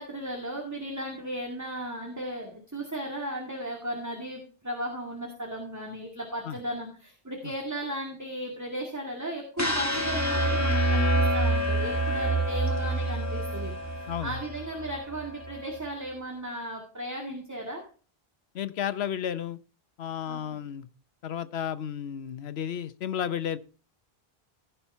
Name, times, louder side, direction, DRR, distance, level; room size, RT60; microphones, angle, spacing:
voice 1, 0.0-17.8 20.3-20.5, right 1 dB, 15° right, 0 dB, 2.2 m, -36 dB
sound 1, 9.6-15.7, right 1 dB, 15° left, 1.8 m, -27 dB
voice 2, 14.1-14.4 18.5-19.6 20.0-20.9 21.2-23.6, left 9 dB, 85° left, 14 dB, 1.0 m, -32 dB
16.0 x 5.6 x 4.4 m, 0.38 s
omnidirectional pair, 1.0 m